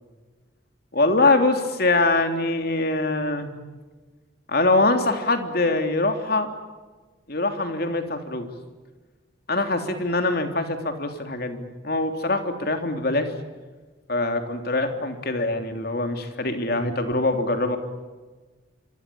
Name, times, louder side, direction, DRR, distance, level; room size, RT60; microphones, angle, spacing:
voice 1, 0.9-3.5 4.5-6.5 7.3-8.5 9.5-13.3 14.1-17.8, left 2 dB, 50° left, 6 dB, 3.2 m, -23 dB
26.5 x 25.5 x 8.7 m, 1.3 s
head